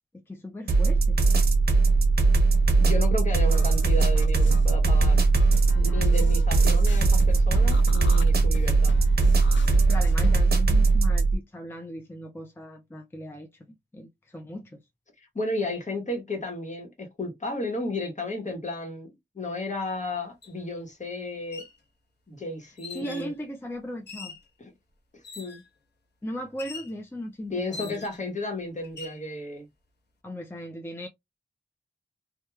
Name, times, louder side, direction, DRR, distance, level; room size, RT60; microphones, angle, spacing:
voice 1, 0.3-1.2 5.7-6.0 9.9-14.8 22.9-24.3 26.2-28.0 30.2-31.1, equal, 10° left, 0.4 m, -38 dB
sound 1, 0.7-11.3, right 3 dB, 60° right, 0.8 m, -20 dB
voice 2, 2.8-5.2 5.7-8.9 15.2-21.7 22.3-23.3 24.6-24.7 25.4-25.6 27.5-29.7, left 2 dB, 40° left, 1.1 m, -33 dB
sound 2, 3.5-10.4, left 1 dB, 90° left, 0.6 m, -35 dB
sound 3, 20.4-20.5 21.4-21.8 22.8-23.3 24.1-24.5 25.2-25.7 26.6-26.9 27.7-28.3 28.8-29.2, left 5 dB, 65° left, 0.8 m, -42 dB
3.1 x 2.3 x 2.3 m
wide cardioid pair, 80°, 19 cm